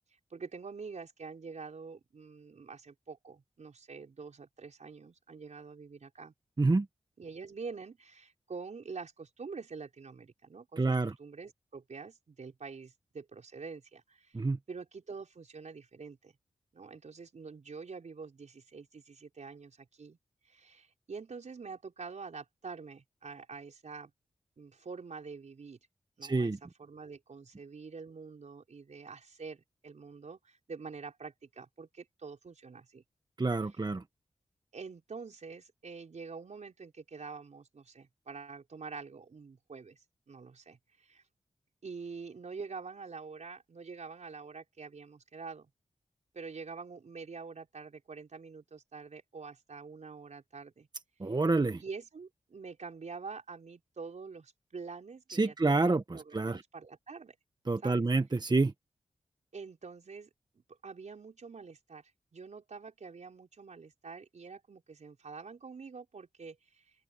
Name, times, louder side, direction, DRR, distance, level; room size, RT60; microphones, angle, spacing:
voice 1, 0.3-6.3 7.2-14.4 14.7-16.3 16.7-20.2 20.4-24.1 24.6-25.8 26.2-33.0 33.6-33.8 34.7-41.2 41.8-45.7 46.3-50.9 51.2-51.4 51.8-57.4 57.8-58.1 59.5-60.3 60.8-66.9, right 5 dB, 70° right, 4.8 m, -46 dB
voice 2, 10.8-11.1 14.3-14.6 26.2-26.6 33.4-34.0 51.2-51.8 55.3-56.6 57.7-58.7, right 3 dB, 35° right, 1.2 m, -28 dB
open air
cardioid pair, 45°, 13 cm